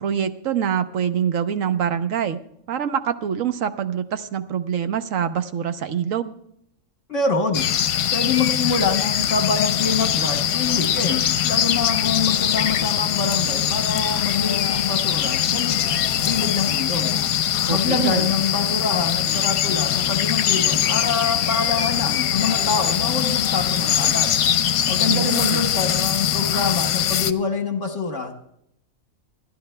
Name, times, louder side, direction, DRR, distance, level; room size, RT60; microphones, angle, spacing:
voice 1, 0.0-2.4 2.7-6.4 17.7-18.3 25.1-25.6, right 8 dB, 70° right, 9 dB, 1.1 m, -25 dB
voice 2, 7.1-7.7 8.1-15.9 16.2-17.1 17.7-24.3 24.9-28.3, left 5 dB, 60° left, 5 dB, 1.4 m, -25 dB
sound 1, 7.5-27.3, left 10 dB, 80° left, 1.1 m, -22 dB
sound 2, 9.1-25.1, left 1 dB, 5° left, 5.1 m, -44 dB
27.5 x 11.0 x 2.2 m, 0.74 s
omnidirectional pair, 1.5 m